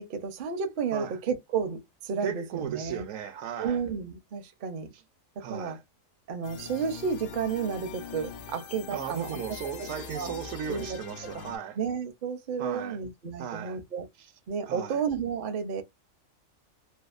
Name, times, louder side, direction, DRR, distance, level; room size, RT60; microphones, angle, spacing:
voice 1, 0.0-3.0 3.6-4.9 5.5-5.8 6.3-9.4 10.1-10.3 10.7-11.0 11.8-14.1 14.5-15.8, right 6 dB, 55° right, 0.6 m, -32 dB
voice 2, 2.2-3.8 5.4-5.8 8.9-11.8 12.6-13.0 13.4-13.8 14.2-14.3 14.7-15.0, right 9 dB, 75° right, 1.0 m, -36 dB
sound 1, 6.4-11.6, left 6 dB, 60° left, 0.5 m, -42 dB
2.7 x 2.3 x 2.4 m
omnidirectional pair, 1.4 m